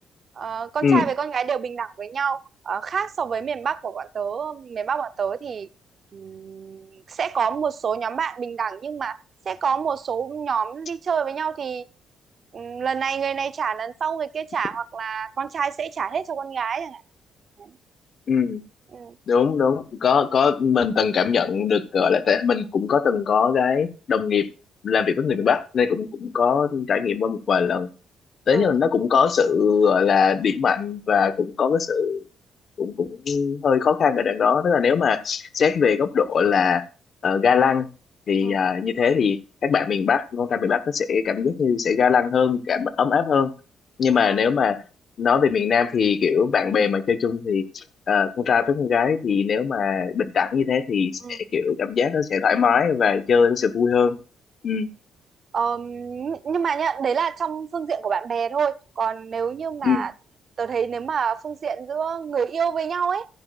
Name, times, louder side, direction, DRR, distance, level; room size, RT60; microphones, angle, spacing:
voice 1, 0.4-5.7 6.1-9.2 9.5-11.8 12.5-17.0 17.6-17.7 18.9-19.2 28.5-28.7 38.4-38.6 44.1-44.4 51.2-51.4 55.5-60.1 60.6-63.3, right 6 dB, 45° right, 0.6 m, -27 dB
voice 2, 18.3-18.6 19.3-24.5 24.8-27.9 28.5-32.2 32.8-36.8 37.2-37.9 38.3-43.5 44.0-44.8 45.2-54.2 54.6-54.9 59.8-60.1, left 6 dB, 50° left, 1.1 m, -21 dB
15.0 x 9.8 x 2.4 m
cardioid pair, 120°, 0 cm